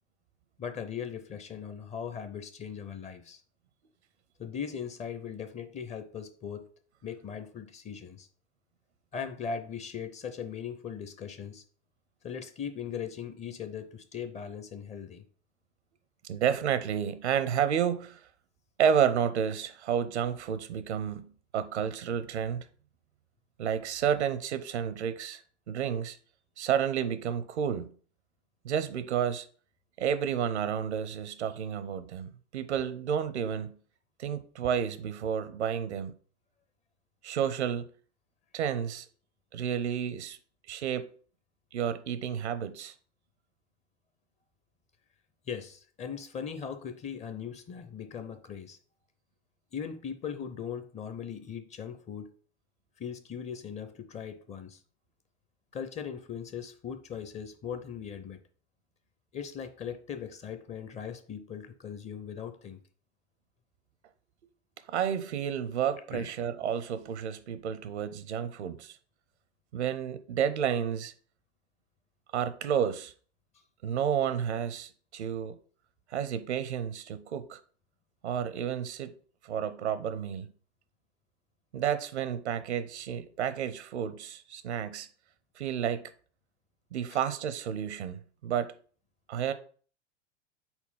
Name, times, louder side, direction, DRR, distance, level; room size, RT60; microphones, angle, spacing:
voice 1, 0.6-3.4 4.4-6.6 7.0-8.3 9.1-11.6 12.2-15.2 45.5-48.8 49.7-52.3 53.0-54.8 55.7-58.4 59.3-62.8 66.1-66.3 87.1-87.2, left 7 dB, 20° left, 0.5 m, -39 dB
voice 2, 16.2-18.2 18.8-22.7 23.6-25.4 25.7-26.2 26.6-27.9 28.6-29.5 30.0-33.8 34.2-36.1 37.2-37.8 38.5-39.1 39.5-40.4 40.7-41.1 41.7-42.9 64.9-69.0 69.7-71.1 72.3-73.1 73.8-75.6 76.1-77.6 78.2-79.1 79.4-80.5 81.7-85.1 85.6-86.1 86.9-88.7 89.3-89.5, right 8 dB, 70° right, 0.7 m, -31 dB
4.4 x 4.1 x 5.6 m
figure-of-eight pair, 90°, 35 cm